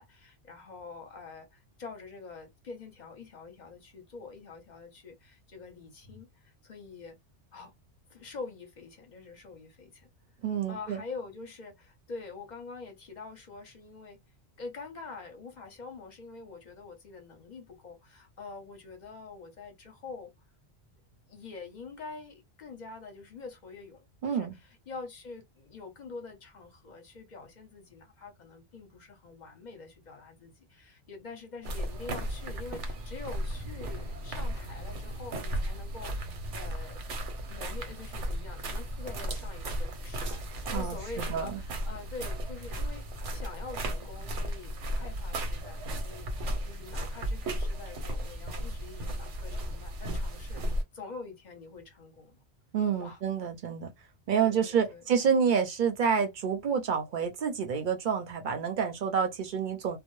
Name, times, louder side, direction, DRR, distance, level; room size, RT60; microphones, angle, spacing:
voice 1, 0.0-7.2 7.5-7.7 8.1-10.1 10.7-14.2 14.6-20.3 21.3-24.5 24.9-37.0 37.4-43.1 43.3-52.4 53.0-53.2 54.4-55.0, left 4 dB, 50° left, 0.6 m, -45 dB
voice 2, 10.4-11.0 24.2-24.5 40.7-41.6 52.7-53.9 54.3-60.0, right 7 dB, 55° right, 0.6 m, -28 dB
sound 1, 31.6-50.8, right 1 dB, 90° right, 1.0 m, -35 dB
2.1 x 2.0 x 2.9 m
omnidirectional pair, 1.2 m